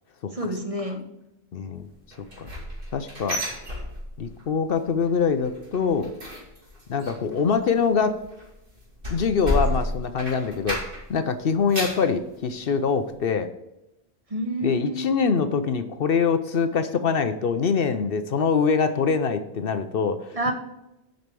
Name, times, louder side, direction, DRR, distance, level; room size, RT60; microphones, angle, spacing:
voice 1, 0.3-1.1 14.3-15.1 20.3-20.5, equal, 35° right, 4 dB, 1.2 m, -28 dB
voice 2, 1.5-1.9 2.4-2.5 2.9-3.4 4.2-6.1 6.9-8.2 9.1-10.8 11.1-13.5 14.6-20.5, left 5 dB, 65° left, 10 dB, 0.9 m, -24 dB
sound 1, 2.1-4.4 4.7-5.1 5.4-11.2 11.5-12.1 12.6-12.7 13.1-13.2, left 1 dB, 55° right, 2.8 m, -31 dB
7.7 x 5.3 x 6.7 m, 0.91 s
omnidirectional pair, 1.1 m